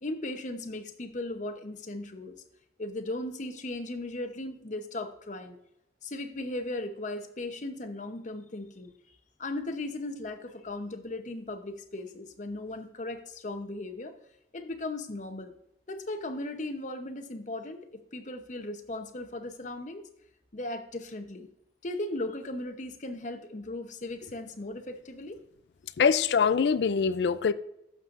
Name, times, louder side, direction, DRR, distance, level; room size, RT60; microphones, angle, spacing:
voice 1, 0.0-2.4 2.8-5.6 6.0-8.9 9.4-14.2 14.5-15.5 15.9-20.0 20.5-21.5 21.8-25.4, left 2 dB, 45° left, 0.8 m, -37 dB
voice 2, 26.0-27.5, left 6 dB, 80° left, 0.4 m, -23 dB
11.5 x 6.8 x 2.5 m
head